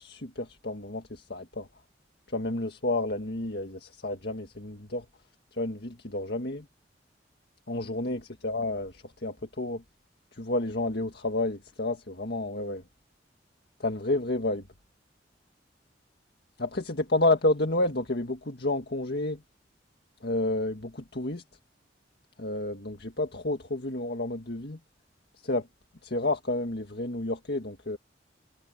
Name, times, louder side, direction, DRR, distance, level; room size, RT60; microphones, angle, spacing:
voice 1, 0.0-1.7 2.3-5.1 5.6-6.7 7.7-9.8 10.3-12.8 13.8-14.6 16.6-19.4 20.2-21.4 22.4-24.8 25.4-25.7 26.0-28.0, left 2 dB, 60° left, 1.8 m, -30 dB
head